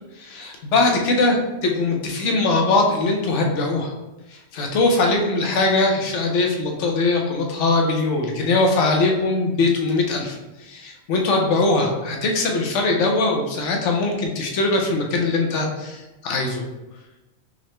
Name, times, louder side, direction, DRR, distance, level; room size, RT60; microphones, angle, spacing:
voice 1, 0.1-3.9 4.3-16.6, left 3 dB, 65° left, 1 dB, 0.9 m, -21 dB
3.8 x 3.1 x 3.1 m, 1.1 s
omnidirectional pair, 1.5 m